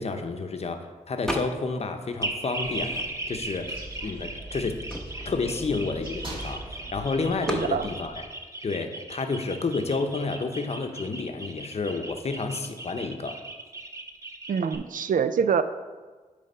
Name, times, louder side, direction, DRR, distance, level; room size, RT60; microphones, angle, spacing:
voice 1, 0.0-2.9 3.3-4.8 5.2-8.2 8.6-13.4, left 3 dB, 50° left, 6 dB, 0.7 m, -30 dB
sound 1, 1.3-1.8 2.2-3.4 4.1-4.2 4.4-6.6 7.5-7.8, equal, 5° left, 0.9 m, -35 dB
sound 2, 2.2-14.8, right 2 dB, 20° right, 0.7 m, -37 dB
sound 3, 2.6-8.2, right 1 dB, 40° right, 1.9 m, -42 dB
voice 2, 7.5-7.9 14.5-15.6, right 7 dB, 75° right, 11 dB, 0.4 m, -25 dB
8.7 x 3.4 x 5.5 m, 1.3 s
wide cardioid pair, 80°, 14 cm